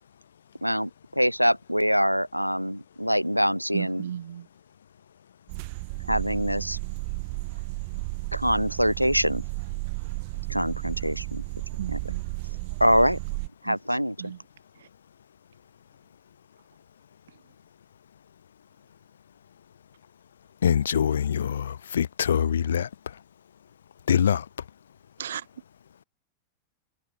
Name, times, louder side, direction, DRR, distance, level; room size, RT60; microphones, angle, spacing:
voice 1, 0.6-4.0 6.1-6.8 8.3-9.4 10.5-11.4 11.9-12.0 12.8-13.2 13.6-14.3, equal, 90° right, 0.7 m, -24 dB
voice 2, 3.7-4.5 11.8-12.3 13.6-13.8 14.2-14.4 25.2-25.4, right 9 dB, 65° right, 2.4 m, -34 dB
sound 1, 5.5-13.5, right 32 dB, 45° right, 1.4 m, -33 dB
voice 3, 20.6-23.2 24.1-24.7, left 8 dB, 65° left, 1.0 m, -24 dB
figure-of-eight pair, 90°, 0 cm